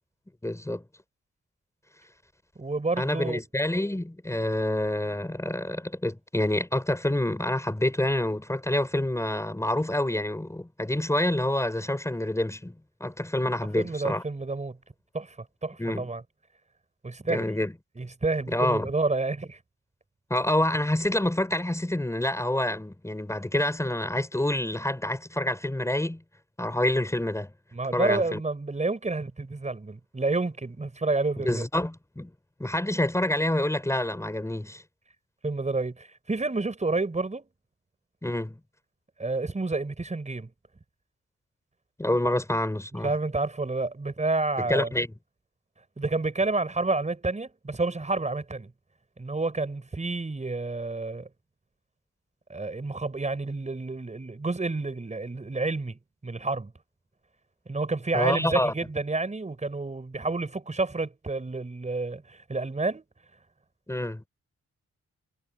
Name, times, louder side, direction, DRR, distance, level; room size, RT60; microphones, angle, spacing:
voice 1, 0.4-0.8 3.0-12.7 13.0-14.2 15.8-16.1 17.3-17.7 18.5-18.9 20.3-26.2 26.6-27.5 27.9-28.4 31.4-32.3 32.6-34.8 38.2-38.6 42.0-43.1 44.7-45.1 58.1-58.7 63.9-64.2, left 1 dB, 10° left, 5.7 m, -27 dB
voice 2, 2.6-3.4 13.7-14.8 15.1-15.4 15.6-16.2 17.0-17.4 18.0-19.6 27.7-31.6 35.4-37.5 39.2-40.5 43.0-44.9 46.0-48.7 49.2-51.3 52.5-56.7 57.7-63.0, right 3 dB, 25° right, 6.1 m, -29 dB
cardioid pair, 105°, 29 cm